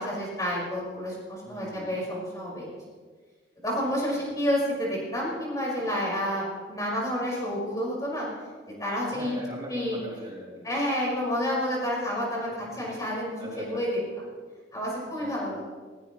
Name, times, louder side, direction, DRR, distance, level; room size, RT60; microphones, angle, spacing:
voice 1, 0.0-2.7 3.6-8.3 8.7-9.3 9.7-10.0 10.6-14.0 14.7-15.6, equal, 20° left, -5 dB, 5.3 m, -29 dB
voice 2, 1.4-2.0 4.1-4.2 9.1-10.7 13.4-13.8 15.0-15.6, equal, 25° right, -5 dB, 2.5 m, -41 dB
20.5 x 17.0 x 3.2 m, 1.5 s
head